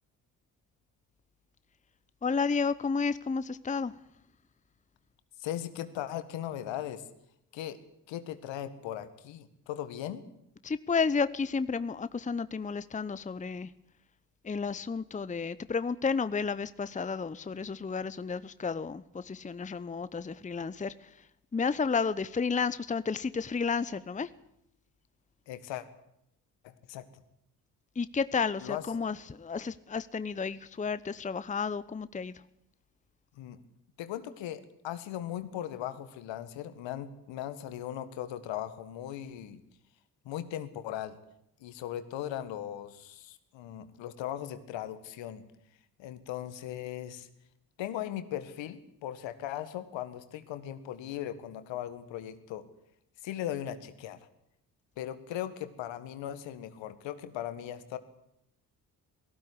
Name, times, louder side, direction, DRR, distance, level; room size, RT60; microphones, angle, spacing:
voice 1, 2.2-3.9 10.6-13.7 14.4-20.9 21.5-24.3 28.0-32.3, left 5 dB, 15° left, 16 dB, 0.8 m, -31 dB
voice 2, 5.4-7.0 7.5-7.8 8.1-10.2 25.5-25.9 26.6-27.1 28.6-28.8 33.4-33.6 34.0-39.6 40.3-41.2 41.6-45.4 46.0-47.3 47.8-52.6 53.2-54.2 55.0-58.0, left 11 dB, 70° left, 12 dB, 1.8 m, -38 dB
18.0 x 15.5 x 9.9 m, 0.79 s
hypercardioid pair, 45°, 47 cm